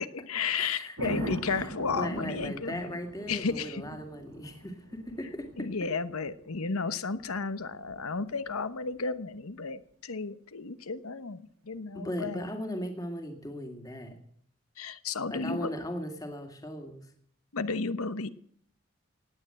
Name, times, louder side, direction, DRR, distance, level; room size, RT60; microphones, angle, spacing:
voice 1, 0.0-3.0 3.3-3.8 5.6-12.5 14.8-15.7 17.5-18.3, left 4 dB, 80° left, 14 dB, 1.0 m, -33 dB
voice 2, 0.5-5.7 11.9-14.2 15.3-17.1, equal, 15° left, 5 dB, 2.0 m, -38 dB
Thunder, 1.0-9.0 11.7-12.1, right 2 dB, 80° right, 2.2 m, -44 dB
18.0 x 9.2 x 7.6 m, 0.62 s
head